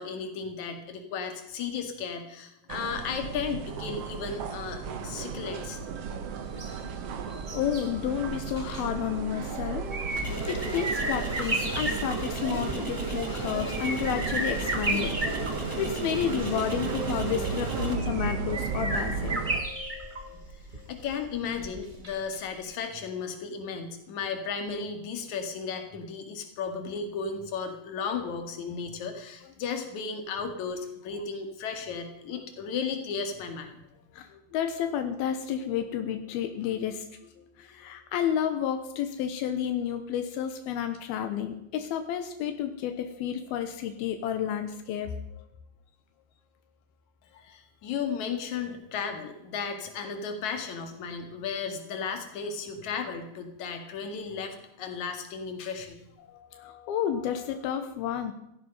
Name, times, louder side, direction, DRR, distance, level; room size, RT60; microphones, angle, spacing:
voice 1, 0.0-5.8 20.5-33.8 47.3-56.1, left 5 dB, 55° left, 5 dB, 3.3 m, -35 dB
sound 1, 2.7-19.6, right 5 dB, 60° right, 1.7 m, -35 dB
sound 2, 6.5-22.4 22.7-22.8, right 2 dB, 40° right, 0.6 m, -35 dB
voice 2, 6.9-9.9 10.5-15.1 15.8-20.5 20.8-20.9 34.1-45.5 56.3-58.3, left 9 dB, 85° left, 7 dB, 2.9 m, -31 dB
sound 3, 10.1-17.9, right 1 dB, 10° right, 1.5 m, -35 dB
16.5 x 13.5 x 5.5 m, 0.84 s
omnidirectional pair, 4.3 m